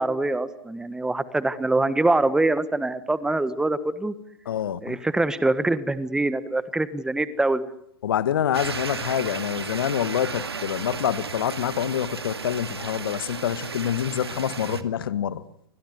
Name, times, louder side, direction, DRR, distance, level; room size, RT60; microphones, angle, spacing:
voice 1, 0.0-4.1 4.8-7.7, right 2 dB, 5° right, 14 dB, 1.6 m, -24 dB
voice 2, 4.5-5.0 8.0-15.4, left 10 dB, 60° left, 15 dB, 1.8 m, -26 dB
sound 1, 8.5-14.8, right 5 dB, 75° right, 2.2 m, -34 dB
28.5 x 25.5 x 8.2 m, 0.74 s
figure-of-eight pair, 105°, 13 cm